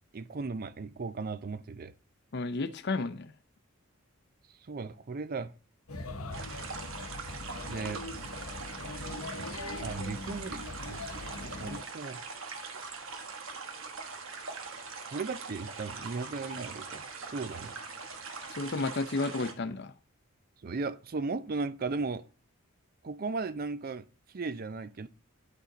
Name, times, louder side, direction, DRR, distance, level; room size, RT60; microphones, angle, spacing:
voice 1, 0.1-1.9 4.6-5.5 7.7-8.0 9.8-11.1 11.4-12.2 15.1-17.0 17.3-17.7 20.6-22.2 23.0-25.1, right 4 dB, 45° right, 0.5 m, -36 dB
voice 2, 2.3-3.3 18.5-19.9, left 3 dB, 50° left, 0.6 m, -32 dB
Male speech man speaking / Child speech kid speaking / Chatter, 5.9-11.8, left 2 dB, 85° left, 0.9 m, -41 dB
sound 1, 6.3-19.5, right 4 dB, 65° right, 1.2 m, -42 dB
10.0 x 5.3 x 3.8 m
head